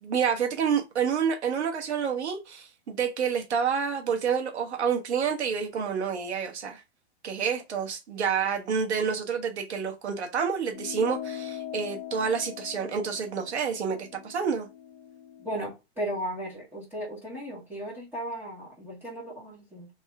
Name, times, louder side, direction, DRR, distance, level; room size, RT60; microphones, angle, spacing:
voice 1, 0.0-6.8 7.2-14.7, right 6 dB, 80° right, 1.3 m, -28 dB
sound 1, 10.7-15.5, left 10 dB, 20° left, 0.8 m, -41 dB
voice 2, 15.4-19.9, equal, 5° right, 1.5 m, -36 dB
3.5 x 3.0 x 3.4 m
hypercardioid pair, 145°, 33 cm